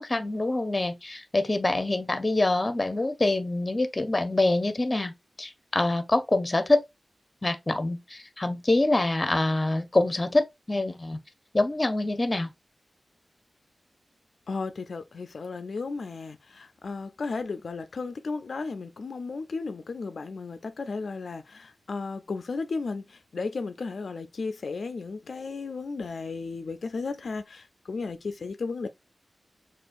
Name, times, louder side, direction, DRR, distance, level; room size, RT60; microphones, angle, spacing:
voice 1, 0.0-5.1 5.4-6.8 7.4-11.2 11.5-12.5, left 2 dB, 25° left, 0.6 m, -25 dB
voice 2, 14.5-28.9, left 4 dB, 75° left, 0.3 m, -34 dB
6.0 x 2.4 x 2.4 m
wide cardioid pair, 100°, 0 cm